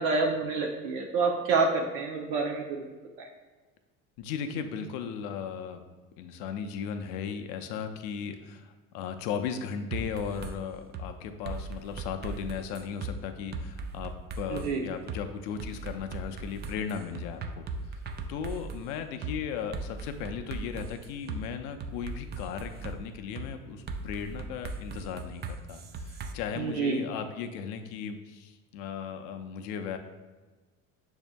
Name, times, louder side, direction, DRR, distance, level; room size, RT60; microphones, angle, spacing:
voice 1, 0.0-2.9 3.2-3.3 14.5-14.8 26.6-27.0, right 4 dB, 70° right, 0 dB, 0.6 m, -28 dB
voice 2, 4.2-5.9 6.2-14.1 14.4-18.0 18.3-25.4 25.7-30.0, left 7 dB, 70° left, 7 dB, 0.5 m, -36 dB
sound 1, 9.9-10.5 10.9-11.1 11.4-13.1 13.5-14.7 15.1-15.2 15.6-18.8 19.2-19.3 19.7-21.4 21.8-23.0 23.4-23.5 23.9-26.3, right 3 dB, 30° right, 0.4 m, -38 dB
6.1 x 2.6 x 2.2 m, 1.3 s
hypercardioid pair, 70°, 37 cm